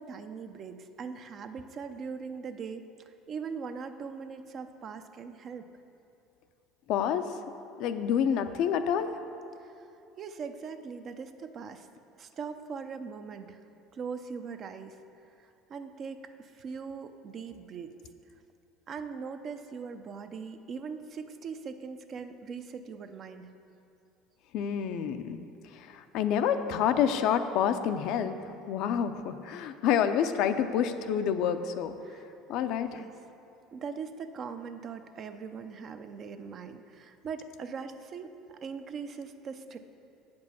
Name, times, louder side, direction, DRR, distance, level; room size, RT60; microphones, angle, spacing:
voice 1, 0.0-5.7 9.6-9.9 10.2-11.9 12.2-13.6 13.9-15.0 15.2-17.9 18.9-23.5 32.0-32.3 32.9-33.1 33.7-39.8, right 5 dB, 45° right, 8 dB, 0.5 m, -41 dB
voice 2, 6.9-7.3 7.8-9.2 24.5-25.4 25.7-32.0 32.5-33.0, left 8 dB, 65° left, 9 dB, 0.5 m, -28 dB
7.9 x 5.3 x 6.8 m, 2.7 s
supercardioid pair, 90°, 0 cm